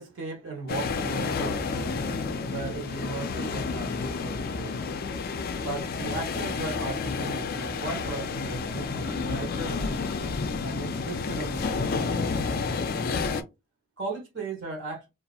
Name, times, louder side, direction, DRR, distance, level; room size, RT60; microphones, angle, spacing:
voice 1, 0.0-10.2 10.6-12.6 14.0-15.1, right 3 dB, 60° right, 1.0 m, -37 dB
sound 1, 0.7-13.4, left 4 dB, 45° left, 0.3 m, -30 dB
2.8 x 2.4 x 2.3 m
head